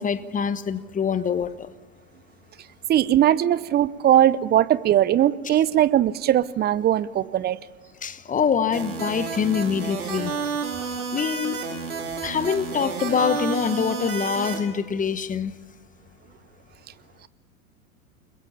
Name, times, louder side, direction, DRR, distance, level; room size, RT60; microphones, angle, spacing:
voice 1, 0.0-1.7 8.0-10.3 11.1-11.6 12.2-15.6, left 7 dB, 20° left, 1.2 m, -25 dB
voice 2, 2.9-7.6, right 11 dB, 20° right, 0.7 m, -20 dB
sound 1, 8.7-14.6, right 5 dB, 80° right, 4.6 m, -30 dB
30.0 x 21.5 x 5.7 m
figure-of-eight pair, 95°, 44 cm